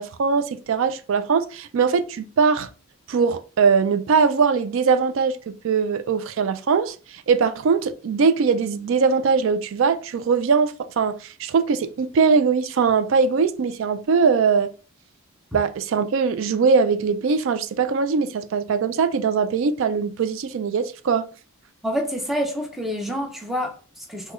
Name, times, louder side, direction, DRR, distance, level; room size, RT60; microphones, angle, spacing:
voice 1, 0.0-2.7 3.1-14.7 15.5-21.3, right 5 dB, 60° right, 0.3 m, -21 dB
voice 2, 21.8-24.3, equal, ahead, 0.5 m, -27 dB
3.6 x 2.1 x 3.0 m
head